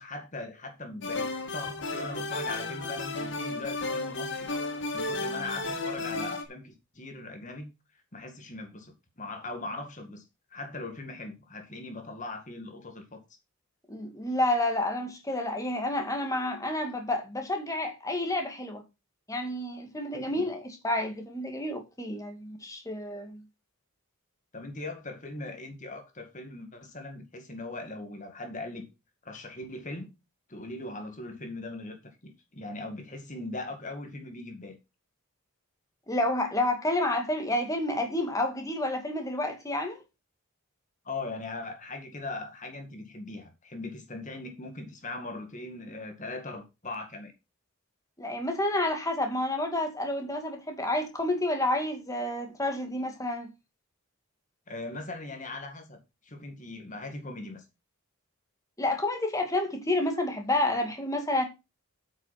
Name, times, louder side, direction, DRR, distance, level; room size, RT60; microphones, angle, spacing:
voice 1, 0.0-4.5 4.9-7.7 8.1-13.2 20.1-20.5 24.5-28.9 29.2-30.1 30.5-34.8 41.0-47.3 54.7-57.7, left 2 dB, 35° left, 2.0 m, -40 dB
sound 1, 1.0-6.4, left 3 dB, 55° left, 1.9 m, -33 dB
voice 2, 13.9-18.8 19.3-23.4 36.1-40.0 48.2-53.5 58.8-61.4, left 1 dB, 15° left, 2.1 m, -29 dB
8.8 x 6.2 x 5.9 m
head